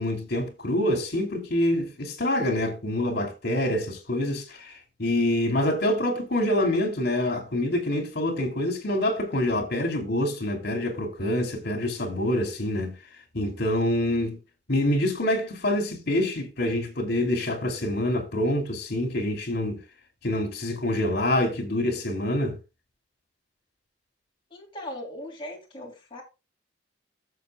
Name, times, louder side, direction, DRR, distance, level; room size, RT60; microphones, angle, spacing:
voice 1, 0.0-13.0 13.3-14.4 14.7-19.8 20.2-22.6, left 1 dB, 60° left, 2.8 m, -26 dB
voice 2, 24.5-26.2, left 1 dB, 30° left, 3.1 m, -39 dB
16.0 x 7.3 x 2.3 m
head